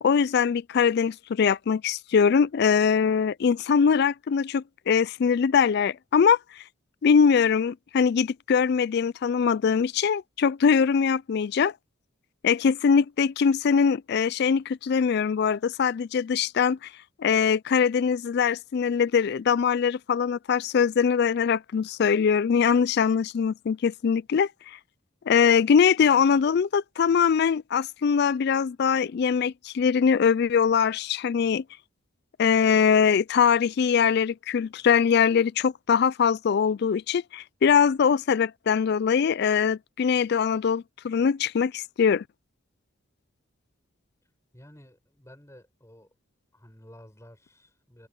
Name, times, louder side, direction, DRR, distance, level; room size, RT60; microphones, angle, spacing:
voice 1, 0.0-6.4 7.0-11.7 12.4-16.8 17.2-24.5 25.3-31.6 32.4-42.2, left 6 dB, 50° left, 0.3 m, -22 dB
voice 2, 44.5-46.2 46.5-48.1, equal, 15° left, 6.1 m, -52 dB
head